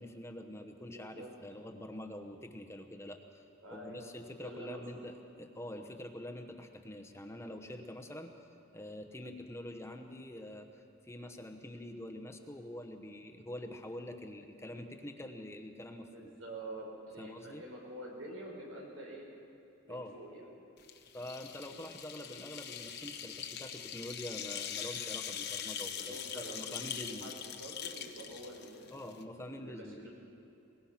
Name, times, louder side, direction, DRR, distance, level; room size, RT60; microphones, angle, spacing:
voice 1, 0.0-3.4 3.7-8.3 8.7-16.3 17.2-17.6 19.9-20.1 21.1-27.4 28.9-30.1, left 1 dB, 15° left, 5 dB, 1.1 m, -45 dB
voice 2, 0.8-1.3 3.6-4.1 4.4-5.1 16.0-19.3 19.8-20.4 21.7-21.8 25.8-29.0 29.5-30.1, right 1 dB, 90° right, -1 dB, 5.6 m, -47 dB
sound 1, 20.8-29.2, left 8 dB, 55° left, 1.1 m, -42 dB
23.0 x 19.5 x 5.9 m, 2.8 s
head